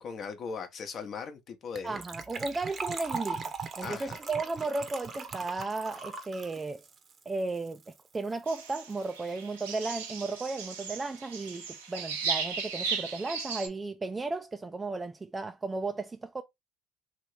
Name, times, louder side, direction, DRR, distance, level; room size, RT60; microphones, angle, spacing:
voice 1, 0.0-2.0 3.8-4.2, left 5 dB, 50° left, 0.8 m, -39 dB
voice 2, 1.8-6.8 7.3-7.8 8.1-16.4, right 3 dB, 25° right, 0.3 m, -34 dB
Gurgling / Trickle dribble / Fill (with liquid), 1.8-8.0 8.2-8.3 8.5-8.7 9.0-9.1, right 4 dB, 40° right, 0.7 m, -40 dB
sound 1, 8.5-13.7, right 5 dB, 90° right, 0.7 m, -36 dB
2.9 x 2.8 x 3.2 m
hypercardioid pair, 65°, 0 cm